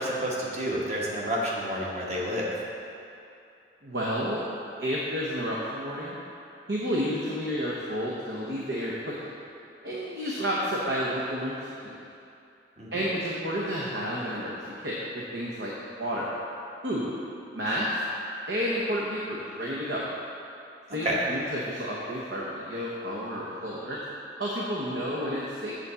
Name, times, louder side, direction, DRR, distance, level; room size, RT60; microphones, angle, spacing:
voice 1, 0.0-2.5 12.8-13.0 21.0-21.2, equal, 35° right, -5 dB, 1.4 m, -29 dB
voice 2, 3.8-4.4 4.8-6.2 6.7-9.3 9.8-12.0 12.9-14.6 14.8-15.7 16.0-16.3 16.8-17.1 17.5-17.9 18.5-20.0 20.9-24.0 24.4-25.7, equal, 65° right, -5 dB, 1.0 m, -31 dB
7.9 x 4.1 x 6.9 m, 2.7 s
head